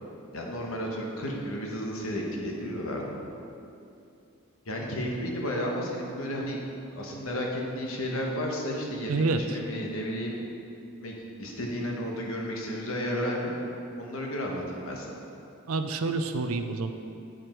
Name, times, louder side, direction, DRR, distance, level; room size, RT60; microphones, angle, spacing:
voice 1, 0.3-3.0 4.7-6.6 6.9-10.4 11.0-13.5 14.0-15.1, equal, 70° left, -1 dB, 1.1 m, -32 dB
voice 2, 9.1-9.6 15.7-16.9, right 3 dB, 75° right, 7 dB, 0.5 m, -28 dB
8.0 x 5.0 x 4.4 m, 2.6 s
head